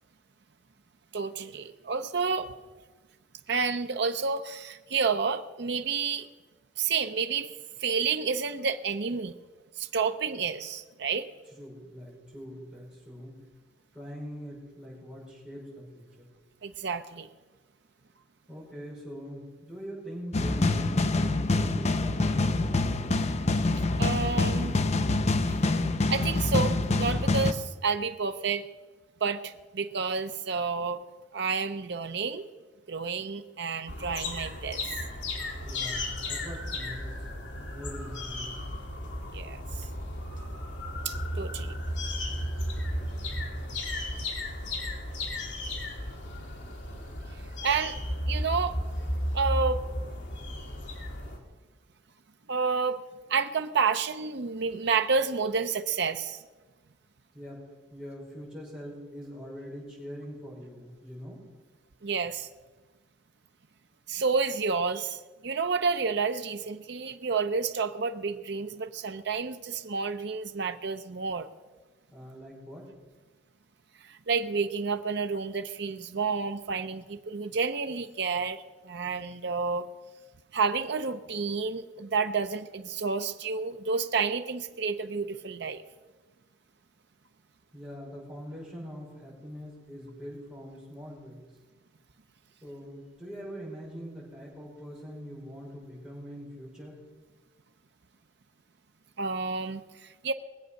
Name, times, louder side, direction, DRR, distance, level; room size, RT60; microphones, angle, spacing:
voice 1, 1.1-2.5 3.5-6.3 6.8-7.5 7.8-9.3 9.8-11.3 16.6-17.3 24.0-24.8 25.5-25.6 26.1-28.6 29.2-31.0 31.3-32.5 32.9-34.8 39.3-39.9 41.0-41.8 47.6-48.0 48.3-48.8 49.3-49.8 52.5-53.0 53.3-56.4 62.0-62.5 64.1-71.5 74.0-79.9 80.5-85.8 99.2-100.3, right 5 dB, 65° right, 8 dB, 0.6 m, -30 dB
voice 2, 11.5-13.4 13.9-16.3 18.5-22.7 35.6-37.3 37.7-38.6 57.3-57.6 57.9-61.4 72.1-72.9 87.7-91.4 92.6-97.0, equal, 5° right, -6 dB, 5.8 m, -43 dB
sound 1, 20.3-27.5, left 2 dB, 35° left, 0.7 m, -26 dB
sound 2, 33.9-51.4, left 1 dB, 70° left, 2.3 m, -34 dB
20.5 x 8.0 x 6.5 m, 1.3 s
head